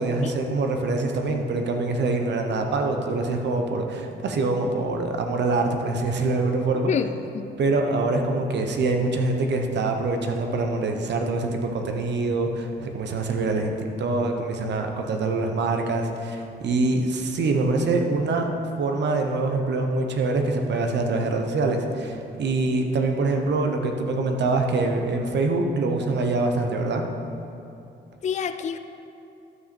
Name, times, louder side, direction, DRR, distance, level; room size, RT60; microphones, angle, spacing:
voice 1, 0.0-6.9 7.6-18.5 18.8-27.0, right 3 dB, 60° right, 4 dB, 1.1 m, -24 dB
voice 2, 6.9-7.5 28.2-28.8, left 7 dB, 35° left, 9 dB, 0.4 m, -27 dB
12.5 x 5.9 x 4.4 m, 2.7 s
cardioid pair, 90°, 20 cm